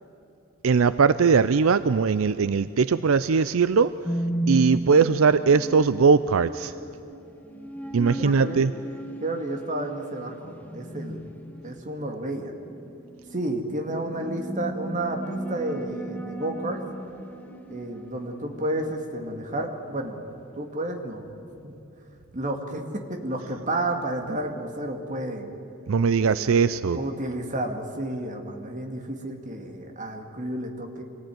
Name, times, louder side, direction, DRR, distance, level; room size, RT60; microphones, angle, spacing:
voice 1, 0.6-3.9 4.5-6.7 7.9-8.7 25.9-27.0, right 5 dB, 75° right, 14 dB, 0.5 m, -20 dB
sound 1, 4.1-20.7, right 1 dB, 5° left, 1.1 m, -35 dB
voice 2, 8.2-8.6 9.2-11.3 11.6-12.5 13.3-16.8 17.7-20.2 20.6-21.2 21.6-21.7 22.3-25.5 26.2-31.0, right 1 dB, 35° right, 3 dB, 2.3 m, -31 dB
25.0 x 18.5 x 9.3 m, 2.8 s
head